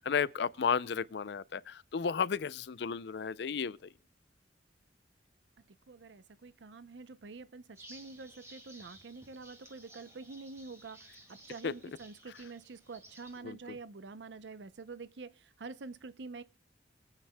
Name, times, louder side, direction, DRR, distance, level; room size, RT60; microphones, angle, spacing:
voice 1, 0.0-3.9 11.6-11.7 13.4-13.8, left 6 dB, 65° left, 0.5 m, -33 dB
voice 2, 5.9-16.4, right 4 dB, 80° right, 0.6 m, -47 dB
sound 1, 7.7-13.4, right 1 dB, 15° right, 2.3 m, -56 dB
24.5 x 9.0 x 2.2 m
head